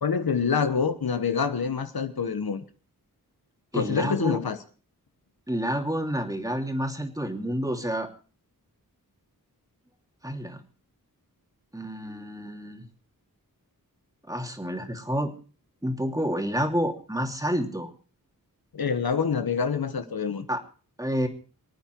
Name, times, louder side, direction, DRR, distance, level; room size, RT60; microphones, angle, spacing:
voice 1, 0.0-2.6 3.7-4.6 18.7-20.5, left 6 dB, 85° left, 9 dB, 1.3 m, -26 dB
voice 2, 3.7-4.4 5.5-8.1 10.2-10.6 11.7-12.8 14.3-15.3 15.8-17.9 20.5-20.6 21.0-21.3, equal, 10° right, 4 dB, 2.7 m, -29 dB
25.5 x 9.2 x 4.6 m, 0.38 s
wide cardioid pair, 75°, 36 cm